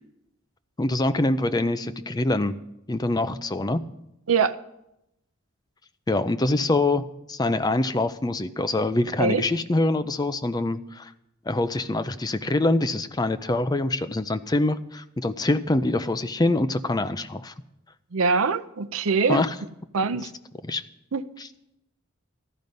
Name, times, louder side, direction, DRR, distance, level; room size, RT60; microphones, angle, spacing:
voice 1, 0.8-2.5 2.9-3.8 6.1-7.0 7.3-11.1 11.5-17.5 19.3-19.5 20.7-20.8, left 2 dB, 20° left, 11 dB, 0.5 m, -24 dB
voice 2, 18.1-19.4 19.9-20.3 21.1-21.2, right 5 dB, 80° right, 14 dB, 0.7 m, -23 dB
13.5 x 12.5 x 5.3 m, 0.84 s
head